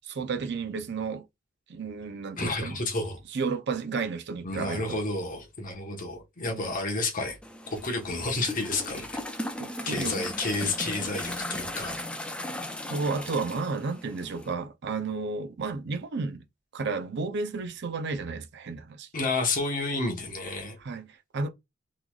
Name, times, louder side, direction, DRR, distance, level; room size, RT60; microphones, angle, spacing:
voice 1, 0.1-1.2 1.7-2.8 3.3-5.0 6.5-6.7 9.6-10.2 12.9-16.4 16.7-19.1 20.8-21.5, right 4 dB, 55° right, 0.5 m, -32 dB
voice 2, 2.4-3.2 4.4-7.4 7.7-9.2 9.8-11.9 19.1-20.8, left 2 dB, 40° left, 1.1 m, -30 dB
sound 1, 7.4-14.5, left 1 dB, 5° left, 0.3 m, -37 dB
3.8 x 3.1 x 2.3 m
head